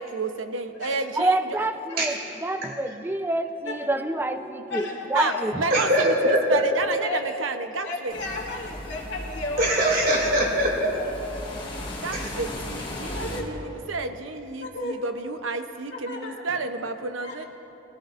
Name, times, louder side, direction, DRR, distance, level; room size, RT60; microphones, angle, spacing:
voice 1, 0.0-1.7 5.1-8.1 12.0-17.4, right 4 dB, 90° right, 7 dB, 0.8 m, -31 dB
voice 2, 1.1-5.6, right 1 dB, 10° right, 8 dB, 0.5 m, -27 dB
voice 3, 4.7-5.5 7.0-7.3 7.8-9.9 11.0-11.2 13.1-13.8 14.6-15.0 15.9-16.4 17.2-17.5, left 2 dB, 65° left, -1 dB, 2.0 m, -34 dB
voice 4, 5.7-6.6 9.6-10.9 12.1-12.3, equal, 50° right, -2 dB, 2.6 m, -22 dB
sound 1, 8.1-13.4, left 1 dB, 25° left, 1.4 m, -36 dB
21.5 x 14.0 x 2.5 m, 3.0 s
head